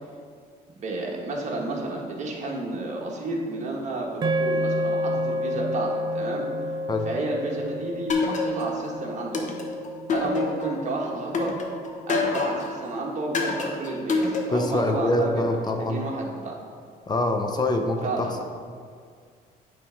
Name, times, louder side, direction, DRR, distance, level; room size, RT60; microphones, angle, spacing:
voice 1, 0.8-6.4 7.0-9.5 10.1-11.6 12.1-15.4 15.8-16.6 18.0-18.3, right 2 dB, 45° right, -1 dB, 1.4 m, -31 dB
sound 1, 4.2-12.6, left 1 dB, 25° right, 0.3 m, -30 dB
sound 2, 8.1-8.9 9.3-10.8 11.3-12.8 13.3-14.8, left 3 dB, 45° left, 1.0 m, -26 dB
voice 2, 14.5-16.0 17.1-18.4, left 1 dB, 25° left, 4 dB, 0.6 m, -25 dB
9.0 x 3.5 x 4.4 m, 2.1 s
cardioid pair, 110°, 17 cm